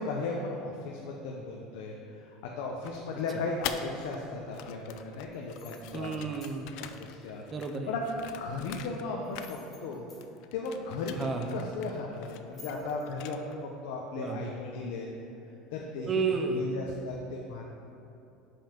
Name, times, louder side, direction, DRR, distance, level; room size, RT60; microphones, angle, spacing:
voice 1, 0.0-6.2 6.8-7.4 7.9-8.0 8.4-10.1 10.5-15.1 15.7-16.1 16.5-17.7, left 3 dB, 75° left, -1 dB, 0.7 m, -36 dB
sound 1, 2.8-4.2 4.5-9.1 9.3-10.0 10.2-13.6, left 10 dB, 55° left, 0.3 m, -44 dB
sound 2, 5.3-6.6 9.2-10.2 12.4-13.1, left 5 dB, 20° left, 1.3 m, -53 dB
voice 2, 5.9-6.8 7.5-7.9 11.2-11.7 14.1-14.5 16.1-16.7, right 4 dB, 20° right, 4 dB, 0.5 m, -32 dB
5.6 x 5.6 x 5.1 m, 2.8 s
cardioid pair, 170°, 0 cm